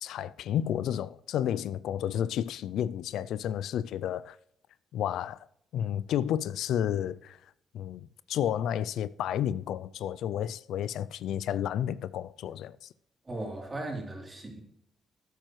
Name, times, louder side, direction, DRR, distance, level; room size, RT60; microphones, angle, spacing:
voice 1, 0.0-4.4 4.9-5.5 5.7-7.4 7.7-12.9, left 10 dB, 80° left, 0.3 m, -31 dB
voice 2, 13.2-14.6, right 2 dB, 25° right, 3.2 m, -37 dB
12.5 x 9.1 x 3.1 m
cardioid pair, 90°, 0 cm